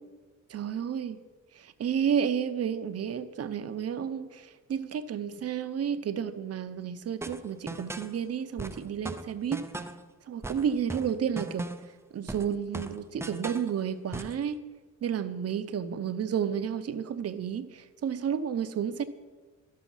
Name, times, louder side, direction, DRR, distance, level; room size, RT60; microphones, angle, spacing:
voice 1, 0.5-1.2 1.5-9.6 10.3-11.7 12.1-14.6 15.0-19.0, right 8 dB, 50° right, 12 dB, 0.8 m, -31 dB
sound 1, 7.2-8.1 8.6-10.0 10.4-11.9 12.3-13.7 14.1-14.4, right 2 dB, 10° right, 0.5 m, -38 dB
12.5 x 12.0 x 5.6 m, 1.4 s
wide cardioid pair, 175°, 31 cm